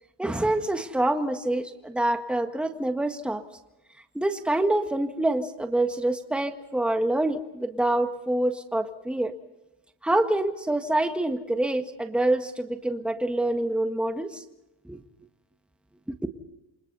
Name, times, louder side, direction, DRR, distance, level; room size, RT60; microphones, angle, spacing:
voice 1, 0.2-3.4 4.2-9.3 10.0-14.4 14.9-15.0 16.1-16.2, right 1 dB, ahead, 6 dB, 1.7 m, -26 dB
29.0 x 26.0 x 4.1 m, 0.96 s
cardioid pair, 115°, 49 cm